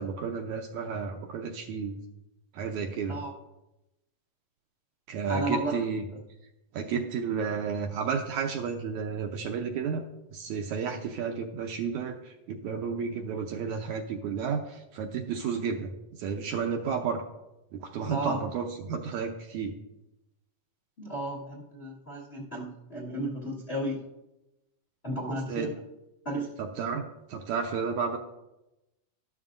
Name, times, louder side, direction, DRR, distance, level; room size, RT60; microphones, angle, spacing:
voice 1, 0.0-2.0 2.5-3.2 5.1-6.0 6.7-10.0 10.3-15.9 16.2-17.2 17.7-19.7 25.5-25.7 26.6-28.2, right 6 dB, 80° right, 3 dB, 1.8 m, -32 dB
voice 2, 5.3-5.7 18.1-18.4 21.0-24.0 25.0-25.7 26.2-26.5, right 1 dB, 75° left, -4 dB, 0.5 m, -33 dB
12.5 x 12.0 x 2.5 m, 0.95 s
omnidirectional pair, 3.9 m